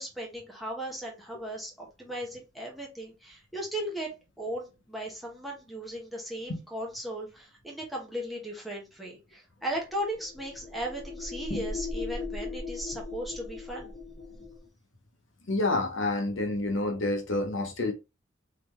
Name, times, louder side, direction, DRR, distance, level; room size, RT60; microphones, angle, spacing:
voice 1, 0.0-13.9, right 1 dB, ahead, 1.1 m, -37 dB
sound 1, 9.7-14.7, left 3 dB, 25° left, 1.3 m, -38 dB
voice 2, 15.5-17.9, left 2 dB, 70° left, 0.9 m, -28 dB
4.0 x 3.2 x 3.1 m
head